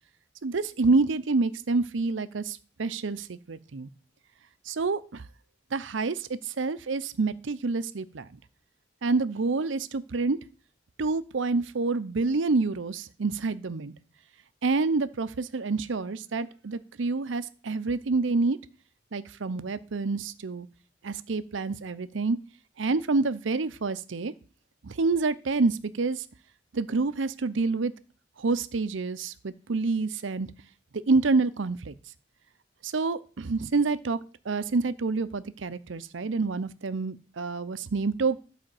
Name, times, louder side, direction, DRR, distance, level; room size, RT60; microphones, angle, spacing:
voice 1, 0.4-3.9 4.7-5.2 5.7-8.3 9.0-10.4 11.0-13.9 14.6-18.6 19.1-20.7 21.0-22.4 22.8-24.3 24.8-26.2 26.7-27.9 28.4-30.5 30.9-31.9 32.8-34.2 34.4-38.4, right 3 dB, 85° right, 14 dB, 0.6 m, -27 dB
11.5 x 5.0 x 7.7 m, 0.37 s
head